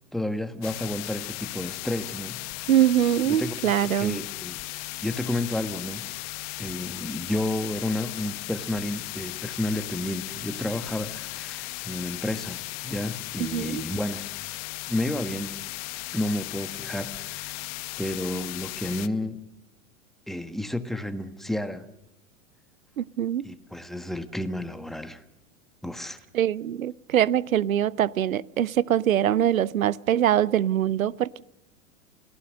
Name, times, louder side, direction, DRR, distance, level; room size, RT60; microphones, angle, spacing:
voice 1, 0.1-2.7 3.3-3.5 3.8-4.6 5.0-6.1 6.6-14.2 14.9-15.6 16.1-17.6 18.0-19.4 20.3-21.8 23.4-25.2 25.8-26.2, left 1 dB, ahead, 1.4 m, -31 dB
sound 1, 0.6-19.1, left 21 dB, 40° left, 0.9 m, -36 dB
voice 2, 2.7-4.2 13.4-13.8 23.0-23.4 26.3-31.4, right 11 dB, 85° right, 0.7 m, -23 dB
29.0 x 18.0 x 6.5 m
hypercardioid pair, 100°, 40 cm